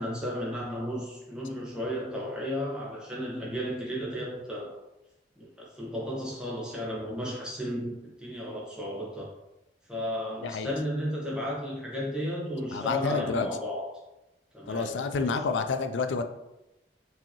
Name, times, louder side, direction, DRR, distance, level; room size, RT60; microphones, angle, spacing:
voice 1, 0.0-4.8 5.4-9.3 9.9-13.9 14.5-15.4, equal, 5° right, -5 dB, 0.9 m, -34 dB
voice 2, 10.4-10.7 12.7-13.5 14.7-16.2, left 4 dB, 85° left, 7 dB, 0.4 m, -29 dB
4.7 x 2.8 x 2.9 m, 0.93 s
head